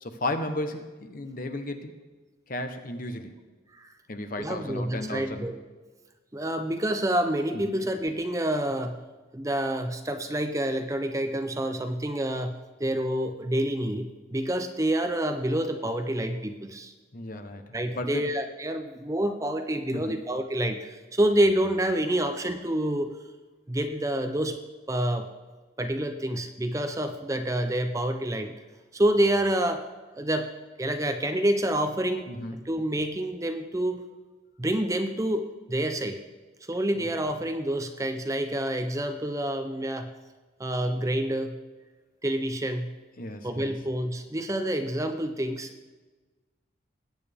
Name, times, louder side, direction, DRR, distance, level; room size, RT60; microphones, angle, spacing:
voice 1, 0.0-1.9 2.5-3.3 4.1-5.5 7.7-7.8 17.1-17.6 17.9-18.2 19.9-20.2 32.3-32.6 43.2-43.8, left 1 dB, 45° left, 7 dB, 1.0 m, -34 dB
voice 2, 4.4-5.6 6.3-9.0 9.3-16.9 17.7-23.1 23.7-24.6 24.9-25.3 25.8-28.5 28.9-29.8 30.2-30.5 30.8-32.3 32.7-34.0 34.6-36.2 36.7-40.1 40.6-41.6 42.2-43.0 43.4-45.9, right 1 dB, 15° right, 7 dB, 0.5 m, -28 dB
20.0 x 9.1 x 3.5 m, 1.3 s
head